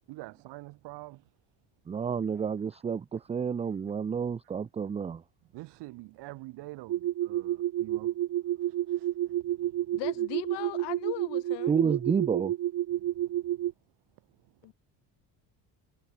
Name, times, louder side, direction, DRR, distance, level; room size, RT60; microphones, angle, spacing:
voice 1, 0.1-1.2 5.5-8.1 9.0-9.1 13.0-13.1, right 20 dB, 75° right, 2.4 m, -45 dB
voice 2, 1.9-5.2 11.7-12.5, right 6 dB, 15° right, 0.4 m, -30 dB
sound 1, 6.9-13.7, right 14 dB, 45° right, 1.0 m, -30 dB
voice 3, 9.9-11.8 14.6-14.7, left 22 dB, 80° left, 2.4 m, -38 dB
cardioid pair, 125°, 42 cm